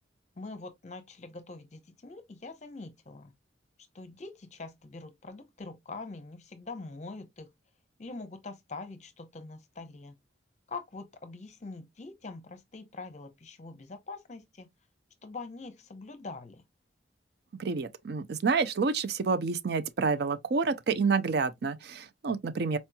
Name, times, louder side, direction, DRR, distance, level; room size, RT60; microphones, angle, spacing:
voice 1, 0.4-3.3 3.9-7.5 8.0-10.1 10.7-14.7 15.2-16.6, left 3 dB, 35° left, 0.7 m, -44 dB
voice 2, 17.6-22.8, right 4 dB, 55° right, 0.4 m, -28 dB
4.3 x 2.9 x 2.2 m
head